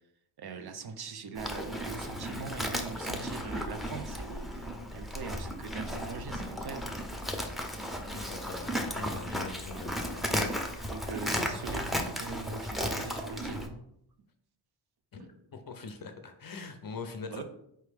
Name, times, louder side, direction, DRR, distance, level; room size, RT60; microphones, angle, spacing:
voice 1, 0.4-6.9 10.9-13.8 17.2-17.4, right 4 dB, 50° right, 8 dB, 0.6 m, -41 dB
Livestock farm animals working animals, 1.3-13.7, equal, ahead, 0.6 m, -35 dB
voice 2, 7.7-10.2 10.7-11.4 15.1-17.4, left 4 dB, 45° left, 6 dB, 0.5 m, -43 dB
4.5 x 3.1 x 3.4 m, 0.76 s
cardioid pair, 60°, 48 cm